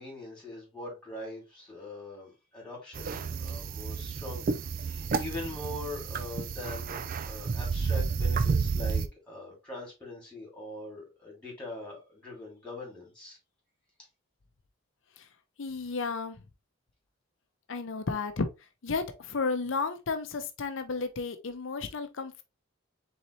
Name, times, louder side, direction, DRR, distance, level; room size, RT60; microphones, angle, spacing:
voice 1, 0.0-13.4, left 2 dB, 5° left, 2.7 m, -42 dB
sound 1, 2.9-9.1, right 5 dB, 40° right, 0.3 m, -31 dB
voice 2, 15.6-16.4 17.7-18.5 18.8-22.4, left 4 dB, 65° left, 0.6 m, -33 dB
4.1 x 3.9 x 3.1 m
head